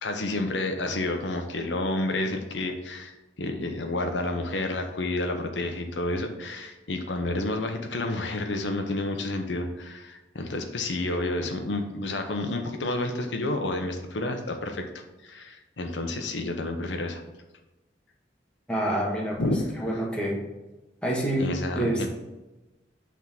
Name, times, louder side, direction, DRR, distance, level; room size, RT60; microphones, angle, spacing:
voice 1, 0.0-14.9 15.2-17.2 19.4-19.6 21.4-22.1, left 2 dB, 90° left, 4 dB, 0.8 m, -30 dB
voice 2, 18.7-19.4 19.8-20.4 21.0-21.4 21.8-22.0, right 1 dB, 5° left, -3 dB, 1.4 m, -27 dB
5.9 x 3.6 x 5.8 m, 1.1 s
head